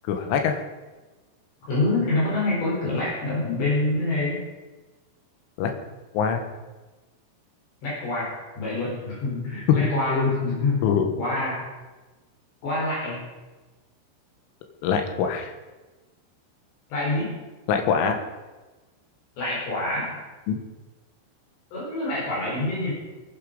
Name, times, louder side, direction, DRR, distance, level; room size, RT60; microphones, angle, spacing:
voice 1, 0.1-0.6 5.6-5.7 6.2-6.4 9.8-9.9 10.8-11.1 14.8-15.5 17.7-18.2 20.5-20.6, left 6 dB, 75° left, 5 dB, 3.8 m, -23 dB
voice 2, 1.7-4.4 7.8-10.9 11.2-11.6 12.6-13.2 16.9-17.3 19.4-20.2 21.7-22.9, left 2 dB, 55° left, -5 dB, 6.5 m, -26 dB
22.0 x 8.9 x 5.4 m, 1.2 s
omnidirectional pair, 5.8 m